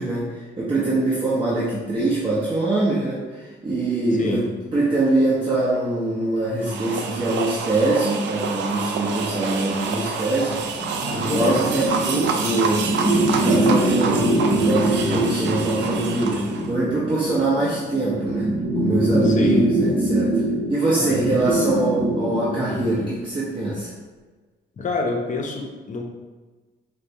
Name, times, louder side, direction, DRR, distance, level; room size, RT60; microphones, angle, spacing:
voice 1, 0.0-10.6 11.1-12.9 13.2-18.5 18.8-20.4 20.7-23.9, right 2 dB, 25° right, -8 dB, 0.8 m, -23 dB
sound 1, 6.6-16.7, right 5 dB, 65° right, 0.4 m, -28 dB
sound 2, 10.7-23.1, right 1 dB, 80° right, 1.0 m, -23 dB
voice 2, 11.0-11.6 19.2-19.7 21.0-21.5 24.8-26.0, left 3 dB, 40° left, 2 dB, 0.6 m, -27 dB
4.5 x 2.1 x 2.8 m, 1.3 s
cardioid pair, 90°, 20 cm